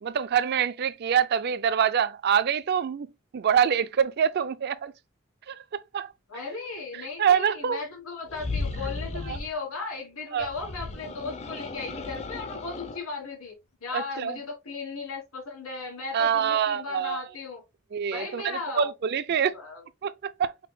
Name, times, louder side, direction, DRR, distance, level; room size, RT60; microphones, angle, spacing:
voice 1, 0.0-3.1 3.3-4.9 5.5-6.1 6.9-7.8 9.3-9.4 10.3-10.5 13.9-14.4 16.1-17.2 17.9-19.5 20.0-20.5, right 8 dB, 50° right, 0.3 m, -25 dB
voice 2, 6.3-13.5 13.8-17.6 18.1-18.9 19.5-19.8, left 4 dB, 75° left, 2.8 m, -36 dB
sound 1, 8.3-9.5 10.4-13.0, left 3 dB, 30° left, 0.5 m, -35 dB
5.6 x 3.5 x 2.3 m
head